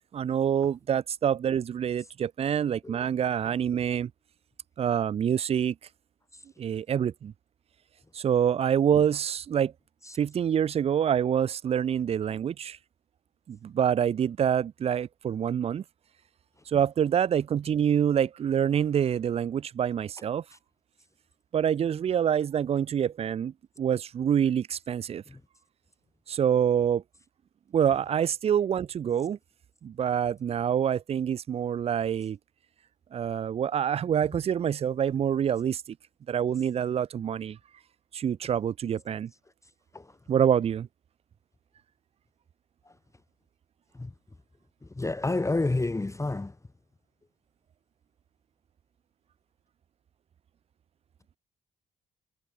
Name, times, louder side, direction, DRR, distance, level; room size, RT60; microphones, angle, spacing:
voice 1, 0.1-4.1 4.8-5.7 6.6-7.3 8.1-9.7 10.2-12.8 13.5-15.8 16.7-20.4 21.5-25.2 26.3-27.0 27.7-29.4 29.8-32.4 33.1-35.8 36.3-37.6 38.1-39.3 40.3-40.9, right 9 dB, 30° right, 0.4 m, -26 dB
voice 2, 45.0-46.5, left 2 dB, 15° left, 1.1 m, -28 dB
hypercardioid pair, 45°, 20 cm